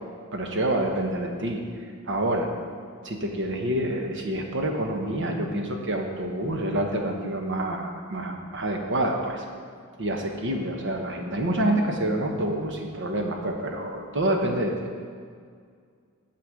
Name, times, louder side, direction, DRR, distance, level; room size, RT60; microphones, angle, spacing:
voice 1, 0.3-1.6 2.1-2.5 3.0-9.4 10.0-14.7, right 1 dB, 60° right, 2 dB, 1.1 m, -27 dB
9.7 x 4.4 x 7.6 m, 2.1 s
head